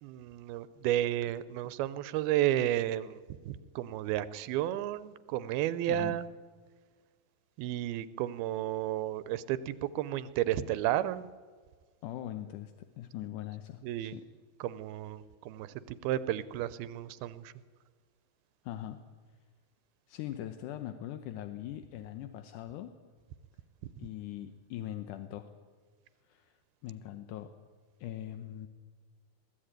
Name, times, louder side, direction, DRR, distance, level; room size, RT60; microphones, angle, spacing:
voice 1, 0.0-3.2 3.5-6.3 7.6-11.3 13.8-14.2 14.6-17.5, right 13 dB, 85° right, 16 dB, 2.6 m, -32 dB
voice 2, 12.0-14.2 18.6-19.0 20.1-23.0 24.0-25.5 26.3-26.6 26.8-27.5 28.0-28.7, left 12 dB, 70° left, 8 dB, 2.1 m, -41 dB
21.5 x 15.0 x 9.0 m, 1.5 s
omnidirectional pair, 4.3 m